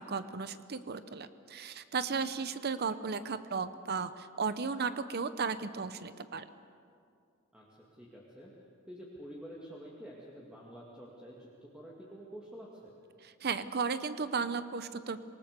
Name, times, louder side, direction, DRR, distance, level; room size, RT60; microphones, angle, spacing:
voice 1, 0.0-6.5 13.2-15.2, right 5 dB, 50° right, 12 dB, 0.7 m, -35 dB
voice 2, 7.5-8.5 8.9-12.9, equal, 5° right, -5 dB, 2.4 m, -48 dB
26.5 x 19.0 x 6.8 m, 2.4 s
head